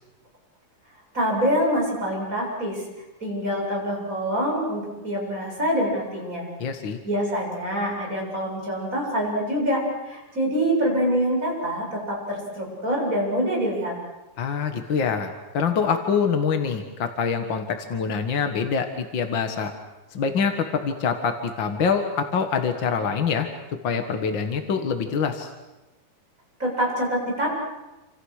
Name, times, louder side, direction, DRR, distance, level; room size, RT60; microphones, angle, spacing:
voice 1, 1.1-2.8 3.2-6.5 7.0-13.9 26.6-27.5, equal, 20° right, -2 dB, 8.3 m, -25 dB
voice 2, 6.6-7.0 14.4-19.7 20.1-23.5 23.8-25.5, left 6 dB, 50° left, 6 dB, 1.5 m, -25 dB
29.0 x 27.5 x 6.5 m, 1.1 s
omnidirectional pair, 4.2 m